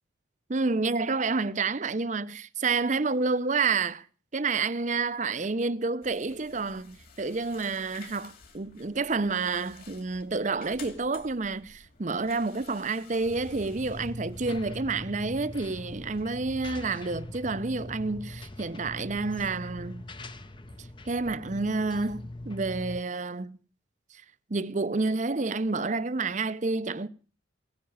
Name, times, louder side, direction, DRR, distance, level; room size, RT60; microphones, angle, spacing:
voice 1, 0.5-4.0 4.3-20.0 21.1-23.6 24.5-27.1, right 3 dB, 40° right, 0.6 m, -29 dB
sound 1, 6.0-16.2, left 4 dB, 45° left, 2.7 m, -53 dB
sound 2, 13.2-23.0, left 1 dB, 25° left, 0.8 m, -42 dB
17.5 x 9.6 x 7.1 m
head